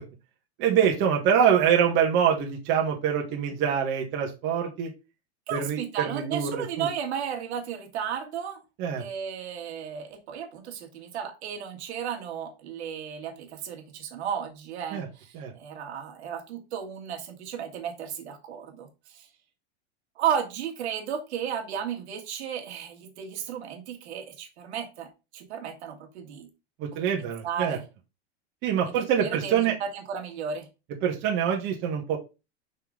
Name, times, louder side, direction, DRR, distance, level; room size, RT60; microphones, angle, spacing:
voice 1, 0.6-4.9 5.5-6.9 8.8-9.0 14.9-15.1 15.3-15.5 26.8-27.8 28.6-29.7 31.0-32.2, right 8 dB, 35° right, 1 dB, 1.5 m, -25 dB
voice 2, 5.5-8.6 9.0-19.3 20.2-26.5 27.1-27.8 29.0-30.7, right 8 dB, 80° right, 3 dB, 1.9 m, -34 dB
5.7 x 3.9 x 4.9 m, 0.28 s
supercardioid pair, 160°, 33 cm